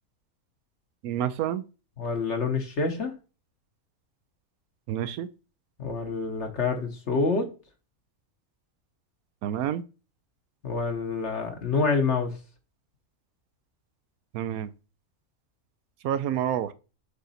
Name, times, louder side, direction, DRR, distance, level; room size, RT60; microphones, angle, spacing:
voice 1, 1.0-1.6 4.9-5.3 9.4-9.8 14.3-14.7 16.0-16.7, right 10 dB, 80° right, 1.1 m, -28 dB
voice 2, 2.0-3.1 5.8-7.5 10.6-12.3, left 4 dB, 55° left, 1.3 m, -27 dB
7.0 x 3.9 x 4.2 m
omnidirectional pair, 1.5 m